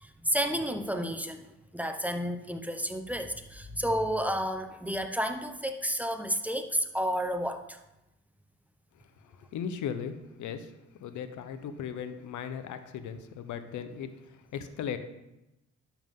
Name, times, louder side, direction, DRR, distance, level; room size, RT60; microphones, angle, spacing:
voice 1, 0.0-7.8, equal, 5° right, 6 dB, 0.8 m, -31 dB
voice 2, 9.2-10.7 11.0-15.0, left 7 dB, 75° left, 10 dB, 0.9 m, -37 dB
11.5 x 7.2 x 3.7 m, 0.93 s
cardioid pair, 90°, 30 cm